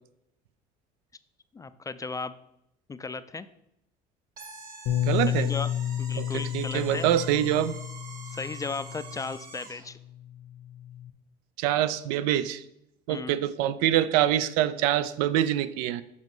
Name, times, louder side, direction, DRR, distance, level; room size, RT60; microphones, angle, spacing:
voice 1, 1.5-2.3 2.9-3.5 5.3-5.7 6.0-7.1 8.2-10.0 13.1-13.4, left 4 dB, 15° left, 13 dB, 0.3 m, -35 dB
sound 1, 4.4-9.9, right 4 dB, 45° right, 1.5 m, -46 dB
Bass guitar, 4.9-9.4 10.1-11.1, left 11 dB, 65° left, 0.9 m, -31 dB
voice 2, 5.1-5.5 6.2-6.3 6.5-7.8 11.6-12.6 13.1-16.0, right 12 dB, 80° right, 15 dB, 0.4 m, -25 dB
7.3 x 5.4 x 3.0 m, 0.80 s
supercardioid pair, 80°, 20 cm